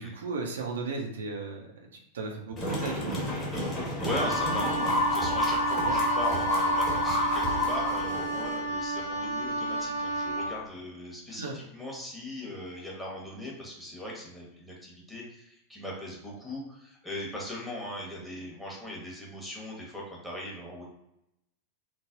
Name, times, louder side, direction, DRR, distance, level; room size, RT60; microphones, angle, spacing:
voice 1, 0.0-1.6 2.1-3.3 5.8-6.0 11.3-11.6, right 3 dB, 65° right, 1 dB, 0.4 m, -35 dB
sound 1, 2.6-8.6, left 1 dB, 20° left, 1.1 m, -29 dB
voice 2, 4.0-20.8, left 1 dB, 5° left, -4 dB, 0.9 m, -39 dB
Wind instrument woodwind instrument, 4.1-10.5, right 1 dB, 80° left, 0.7 m, -32 dB
3.2 x 2.1 x 2.4 m, 0.83 s
figure-of-eight pair, 90°, 0 cm